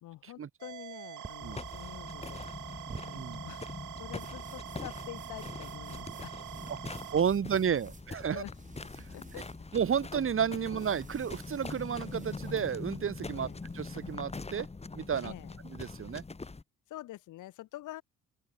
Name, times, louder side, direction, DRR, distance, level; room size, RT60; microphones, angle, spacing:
voice 1, 0.0-6.4 8.3-8.5 9.1-9.5 13.3-13.6 15.2-15.5 16.9-18.0, left 15 dB, 85° left, 2.9 m, -47 dB
sound 1, 0.6-7.2, right 15 dB, 75° right, 1.0 m, -45 dB
sound 2, 1.2-14.2, right 4 dB, 25° right, 2.4 m, -53 dB
sound 3, 1.4-16.6, left 3 dB, 20° left, 2.0 m, -43 dB
voice 2, 7.1-8.4 9.7-13.5 13.7-14.7 14.9-15.3 15.6-16.2, right 7 dB, 45° right, 2.1 m, -31 dB
open air
cardioid pair, 90°, 30 cm